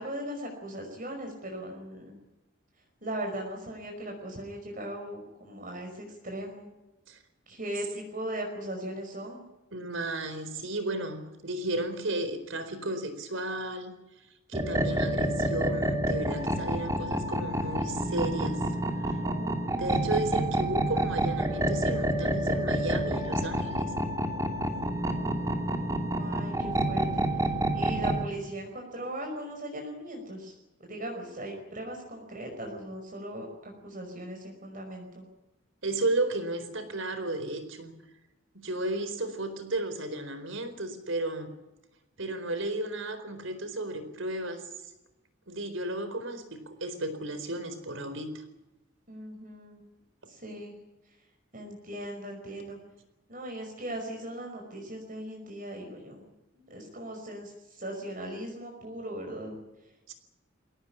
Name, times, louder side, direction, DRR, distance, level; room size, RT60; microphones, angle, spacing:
voice 1, 0.0-2.2 3.0-6.7 7.5-9.4 19.2-19.9 25.1-27.2 27.7-30.5 30.8-35.2 49.1-49.9 50.3-50.8 51.5-52.8 53.3-56.3 56.7-59.6, right 1 dB, 40° right, 2 dB, 5.4 m, -39 dB
voice 2, 9.7-13.9 14.5-18.6 19.0-19.2 19.8-23.9 35.8-38.0 38.6-41.6 42.2-44.6 45.5-48.4 60.1-60.2, right 2 dB, 75° right, 11 dB, 4.3 m, -33 dB
sound 1, 14.5-28.2, right 1 dB, 15° right, 2.6 m, -28 dB
22.5 x 18.0 x 9.9 m, 0.98 s
head